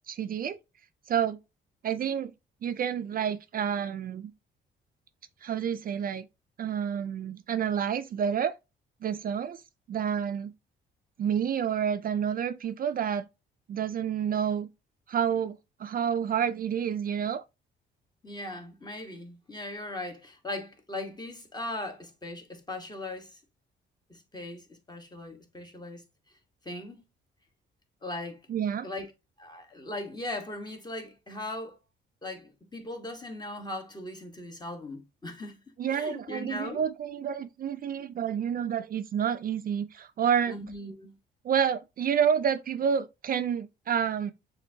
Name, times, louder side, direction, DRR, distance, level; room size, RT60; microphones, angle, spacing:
voice 1, 0.1-0.6 1.1-1.4 1.8-2.3 2.6-4.3 5.4-6.3 6.6-8.6 9.0-9.6 9.9-10.5 11.2-13.3 13.7-14.7 15.1-17.4 28.5-28.9 35.8-40.6 41.4-44.3, right 8 dB, 45° right, 0.4 m, -29 dB
voice 2, 18.2-23.4 24.1-26.0 26.6-27.0 28.0-28.4 28.8-29.1 29.4-31.8 32.2-35.6 35.9-36.8 40.5-41.1, left 2 dB, 20° left, 1.2 m, -39 dB
6.7 x 2.6 x 2.7 m
cardioid pair, 90°, 20 cm